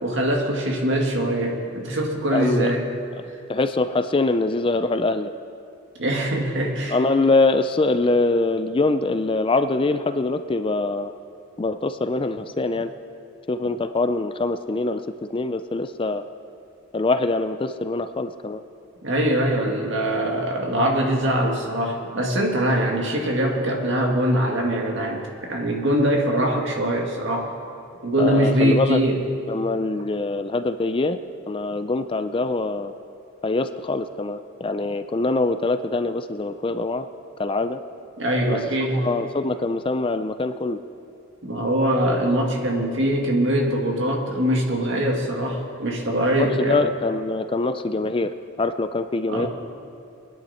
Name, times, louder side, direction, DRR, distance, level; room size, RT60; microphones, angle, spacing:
voice 1, 0.0-2.9 6.0-7.0 19.0-27.5 28.0-29.2 38.2-39.1 41.4-46.8 49.3-49.5, right 1 dB, 60° right, 0 dB, 2.2 m, -22 dB
voice 2, 2.3-2.7 3.5-5.3 6.9-11.1 11.6-12.9 13.5-15.0 15.3-16.2 16.9-18.6 28.2-29.0 29.5-31.2 31.5-32.9 33.4-37.1 37.4-37.8 38.5-38.6 38.9-40.8 46.4-49.5, left 3 dB, 25° left, 10 dB, 0.4 m, -23 dB
23.5 x 10.5 x 4.3 m, 2.5 s
head